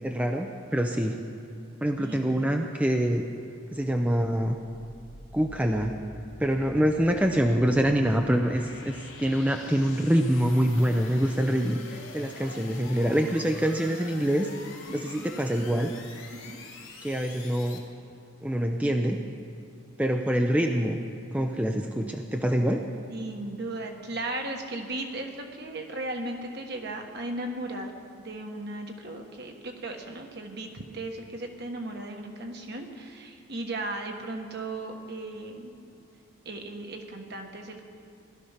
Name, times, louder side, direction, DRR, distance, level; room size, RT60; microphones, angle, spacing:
voice 1, 0.0-1.2 1.8-3.2 3.7-4.6 5.3-5.9 6.4-14.5 14.9-15.9 17.0-17.8 18.4-19.2 20.0-21.0 21.3-22.8, equal, 5° right, 3 dB, 0.5 m, -25 dB
voice 2, 2.0-2.4 12.4-12.5 14.9-15.3 16.5-16.6 23.1-27.9 28.2-35.7 36.4-37.8, right 2 dB, 50° right, 3 dB, 1.4 m, -36 dB
sound 1, 4.3-17.8, left 3 dB, 80° left, 2.6 m, -46 dB
16.5 x 12.5 x 5.8 m, 2.6 s
head